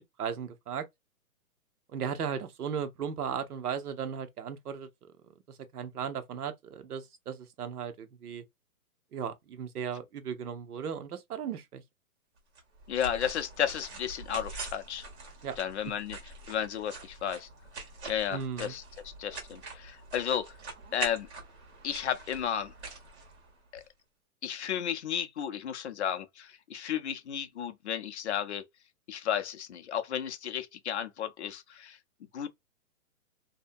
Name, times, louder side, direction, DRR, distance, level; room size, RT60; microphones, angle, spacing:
voice 1, 0.2-0.9 1.9-4.9 5.5-8.4 9.1-11.8 15.4-15.6 18.3-18.7, right 7 dB, 85° right, 0.8 m, -36 dB
sound 1, 12.6-23.9, right 3 dB, 45° right, 1.4 m, -44 dB
voice 2, 12.9-15.0 15.6-17.5 18.1-18.8 19.2-20.6 20.9-21.3 21.8-22.7 23.7-23.8 24.4-28.6 29.1-32.0 32.3-32.5, left 9 dB, 50° left, 0.5 m, -33 dB
2.7 x 2.1 x 2.4 m
hypercardioid pair, 165°, 44 cm